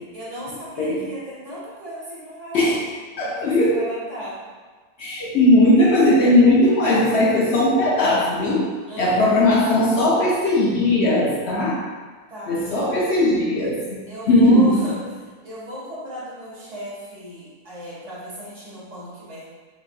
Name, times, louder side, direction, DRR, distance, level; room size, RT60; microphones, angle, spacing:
voice 1, 0.1-2.8 3.2-4.4 8.8-9.5 12.3-12.6 14.1-19.4, equal, 60° right, -8 dB, 1.7 m, -36 dB
voice 2, 3.2-3.8 5.0-8.6 9.0-11.8 12.5-14.0 14.3-14.8, left 1 dB, 60° left, -5 dB, 0.8 m, -18 dB
4.2 x 3.8 x 2.3 m, 1.4 s
omnidirectional pair, 1.4 m